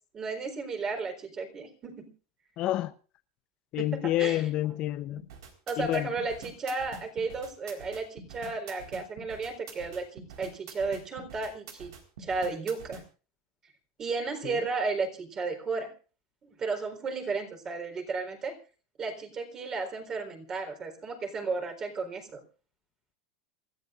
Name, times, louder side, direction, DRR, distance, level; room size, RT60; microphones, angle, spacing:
voice 1, 0.1-2.1 3.8-4.5 5.7-11.9 12.2-13.0 14.0-15.9 16.4-18.6 19.0-22.4, right 4 dB, 30° right, 4.1 m, -34 dB
voice 2, 2.6-2.9 3.7-5.2 5.8-6.1 14.4-14.5, left 15 dB, 45° left, 0.8 m, -28 dB
sound 1, 5.2-13.0, right 5 dB, 85° right, 4.2 m, -46 dB
27.5 x 14.0 x 2.5 m
supercardioid pair, 125°, 2 cm